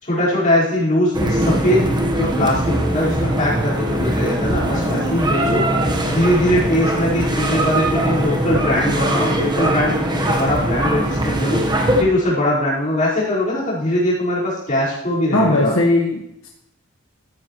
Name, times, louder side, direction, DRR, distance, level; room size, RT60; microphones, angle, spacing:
voice 1, 0.0-1.8 2.1-5.6 6.1-11.6 12.0-15.7, left 1 dB, 40° left, -8 dB, 4.7 m, -21 dB
sound 1, 1.1-12.0, right 1 dB, 20° right, 1.2 m, -21 dB
voice 2, 15.3-16.5, left 2 dB, 85° left, -1 dB, 1.5 m, -18 dB
13.5 x 9.2 x 3.1 m, 0.81 s
head